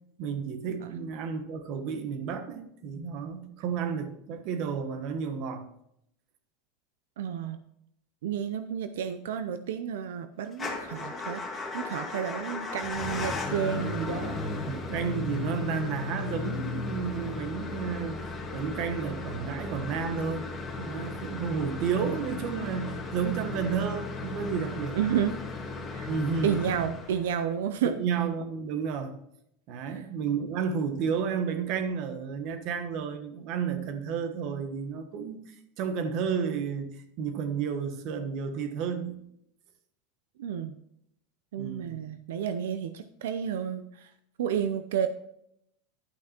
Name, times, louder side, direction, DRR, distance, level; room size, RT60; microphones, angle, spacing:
voice 1, 0.2-5.7 14.7-18.2 18.5-20.5 20.8-25.0 26.1-26.6 28.0-29.2 29.7-39.2 41.6-42.0, right 6 dB, 50° right, 1.3 m, -32 dB
voice 2, 7.2-7.6 8.2-14.4 24.9-25.3 25.9-26.1 26.4-28.0 29.9-30.0 40.4-40.7 41.5-44.1 44.4-45.1, right 8 dB, 90° right, 0.6 m, -31 dB
Motor vehicle (road) / Engine starting / Idling, 10.5-27.5, left 3 dB, 15° left, 1.9 m, -36 dB
11.5 x 5.9 x 4.4 m
supercardioid pair, 145°, 0 cm